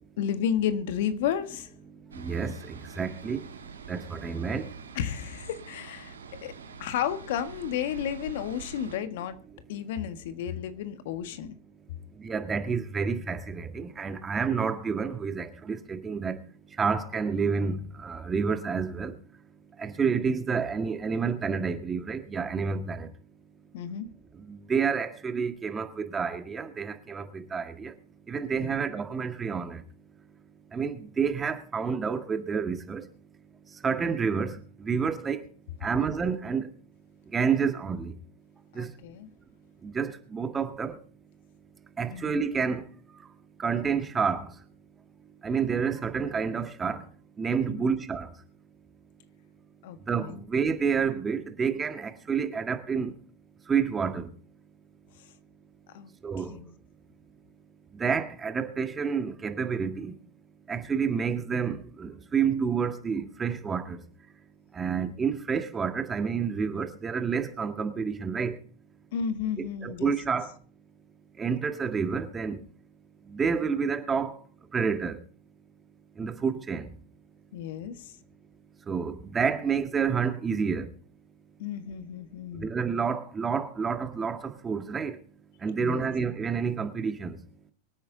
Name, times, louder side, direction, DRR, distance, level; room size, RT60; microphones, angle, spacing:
voice 1, 0.2-1.7 4.9-9.4 9.7-11.5 23.7-24.1 28.6-28.7 38.7-39.3 42.1-42.4 47.7-47.9 49.8-50.4 55.9-56.1 56.4-56.7 69.1-70.1 77.5-78.1 81.6-82.7 85.8-86.1, left 9 dB, 65° left, 1.5 m, -32 dB
voice 2, 2.1-3.5 3.9-4.7 12.2-16.4 16.8-19.1 19.8-23.1 24.5-27.9 28.3-29.8 30.7-33.0 33.8-35.5 35.8-36.7 37.3-38.1 38.7-38.9 39.8-41.0 42.0-42.9 43.6-44.5 45.4-47.0 47.4-48.3 50.1-53.1 53.7-54.3 56.2-56.5 58.0-60.1 60.7-64.0 64.7-68.6 69.8-70.5 71.4-72.6 73.3-74.4 74.7-75.2 76.2-76.9 78.9-80.9 82.6-85.1 85.6-87.4, right 6 dB, 20° right, 1.8 m, -29 dB
sound 1, 2.1-9.0, right 6 dB, 85° right, 2.1 m, -45 dB
24.5 x 9.0 x 3.9 m
hypercardioid pair, 100°, 0 cm